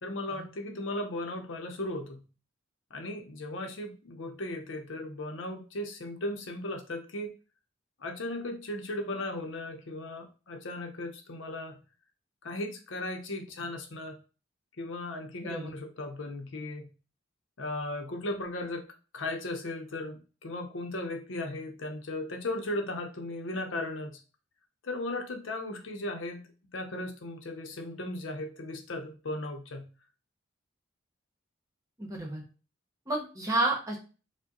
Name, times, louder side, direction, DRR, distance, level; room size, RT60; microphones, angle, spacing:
voice 1, 0.0-2.2 2.9-7.4 8.0-11.8 12.4-14.1 14.8-16.9 17.6-18.9 19.1-24.2 24.8-26.5 26.7-29.9, left 1 dB, 90° left, 4 dB, 0.7 m, -36 dB
voice 2, 32.0-32.4 33.1-34.0, right 2 dB, 20° right, -1 dB, 1.0 m, -30 dB
4.6 x 2.2 x 2.9 m, 0.34 s
head